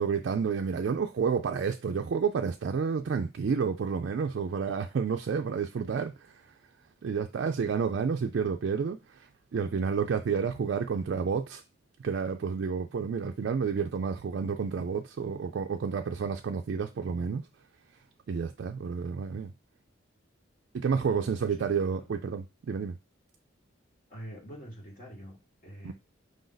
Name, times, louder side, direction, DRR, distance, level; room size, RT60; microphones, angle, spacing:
voice 1, 0.0-6.4 7.0-11.6 12.0-17.4 18.3-19.5 20.7-23.0 25.8-25.9, right 6 dB, 60° right, 0.3 m, -30 dB
voice 2, 21.0-21.7 24.1-25.4 25.6-25.9, equal, 40° left, 1.5 m, -45 dB
5.1 x 2.6 x 3.9 m
head